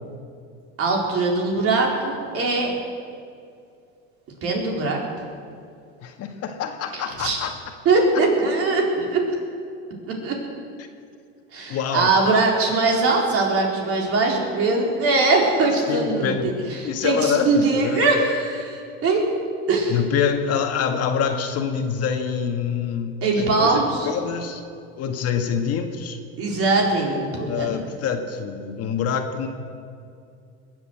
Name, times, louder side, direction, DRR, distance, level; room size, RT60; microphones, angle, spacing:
voice 1, 0.8-2.7 4.4-5.0 6.9-7.4 7.8-9.3 10.1-10.4 11.5-16.5 16.8-19.2 19.7-20.0 23.2-24.1 26.4-27.7, right 3 dB, 45° right, 0 dB, 4.3 m, -21 dB
voice 2, 6.0-7.5 11.7-12.1 15.9-16.5 16.8-18.3 19.9-24.6 25.0-26.2 27.3-29.5, left 7 dB, 50° left, 5 dB, 1.8 m, -26 dB
21.5 x 8.4 x 7.9 m, 2.4 s
supercardioid pair, 110°, 31 cm